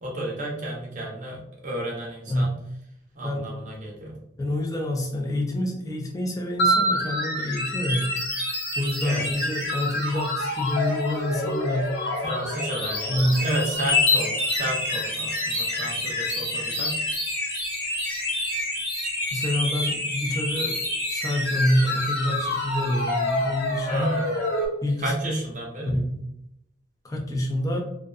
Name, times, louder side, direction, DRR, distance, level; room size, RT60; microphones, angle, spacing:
voice 1, 0.0-2.5 3.2-4.1 6.7-6.8 9.0-9.3 12.2-17.0 23.9-24.2 25.0-25.9, right 1 dB, 40° right, -3 dB, 0.5 m, -31 dB
voice 2, 4.4-8.1 8.8-11.9 13.0-13.5 19.3-20.8 21.1-24.1 24.8-25.1 25.9-26.2 27.0-27.8, left 1 dB, 15° left, 0 dB, 0.4 m, -27 dB
sound 1, 6.6-24.7, left 1 dB, 55° left, 0.9 m, -27 dB
2.5 x 2.3 x 2.2 m, 0.79 s
head